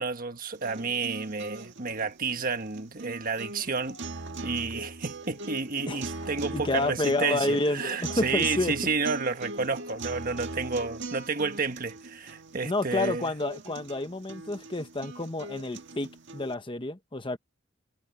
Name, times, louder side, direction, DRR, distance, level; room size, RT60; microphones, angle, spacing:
voice 1, 0.0-4.0 4.4-13.3, right 4 dB, 45° right, 1.5 m, -31 dB
sound 1, 0.5-16.5, right 2 dB, 65° right, 1.8 m, -40 dB
voice 2, 6.4-8.7 12.6-17.4, left 2 dB, 25° left, 1.2 m, -29 dB
head